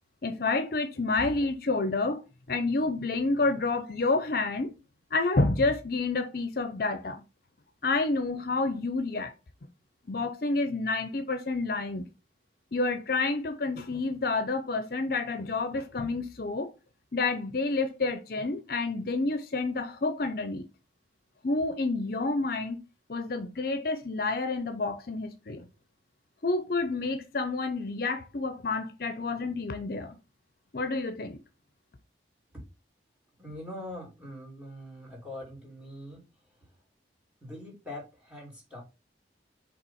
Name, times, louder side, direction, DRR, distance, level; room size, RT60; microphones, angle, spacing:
voice 1, 0.2-2.2 2.5-4.7 5.1-7.2 7.8-9.3 10.1-12.1 12.7-16.7 17.1-20.6 21.4-22.8 23.1-25.7 26.4-30.2 30.7-31.4, left 3 dB, 55° left, 0.6 m, -29 dB
voice 2, 33.4-36.2 36.5-36.7 37.4-38.8, left 1 dB, 5° right, 2.9 m, -43 dB
5.5 x 3.8 x 5.6 m
head